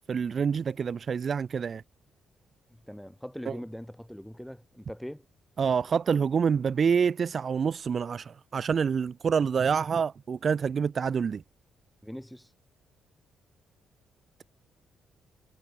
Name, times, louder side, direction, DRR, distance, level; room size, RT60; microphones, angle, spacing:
voice 1, 0.1-1.8 3.5-3.6 5.6-11.4, right 6 dB, 35° right, 0.9 m, -27 dB
voice 2, 2.7-5.2 12.0-12.5, equal, ahead, 4.2 m, -41 dB
cardioid pair, 150°, 0 cm